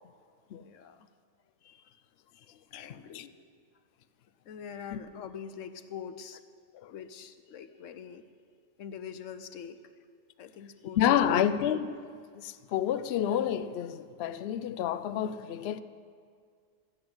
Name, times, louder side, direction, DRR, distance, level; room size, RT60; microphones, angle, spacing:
voice 1, 0.6-1.1 1.6-2.0 2.3-3.3 4.4-6.4 6.9-8.2 8.8-9.8 10.4-11.3, left 7 dB, 90° left, 1.1 m, -44 dB
voice 2, 2.7-3.2 6.7-6.9 11.0-12.0 12.4-15.8, left 10 dB, 65° left, 0.7 m, -29 dB
13.5 x 8.3 x 8.7 m
omnidirectional pair, 1.3 m